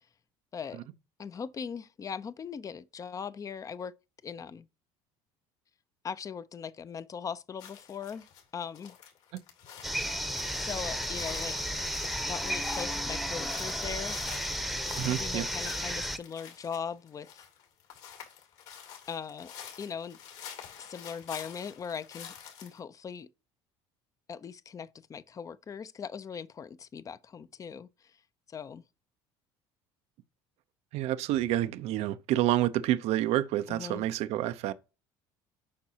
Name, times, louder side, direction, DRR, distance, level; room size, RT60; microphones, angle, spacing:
voice 1, 0.5-0.8 1.2-3.9 4.2-4.7 6.0-8.3 8.5-9.0 10.5-11.6 12.3-14.4 15.0-17.4 19.1-19.5 19.8-20.2 20.8-22.3 22.6-23.3 24.3-27.9 28.5-28.8 33.7-34.1, left 7 dB, 30° left, 0.5 m, -39 dB
sound 1, 7.6-8.4 8.7-22.8, left 8 dB, 70° left, 2.7 m, -48 dB
sound 2, 9.8-16.2, equal, ahead, 0.9 m, -33 dB
voice 2, 14.9-15.5 30.9-34.7, right 13 dB, 65° right, 0.6 m, -28 dB
8.6 x 5.3 x 2.8 m
supercardioid pair, 95°, 12 cm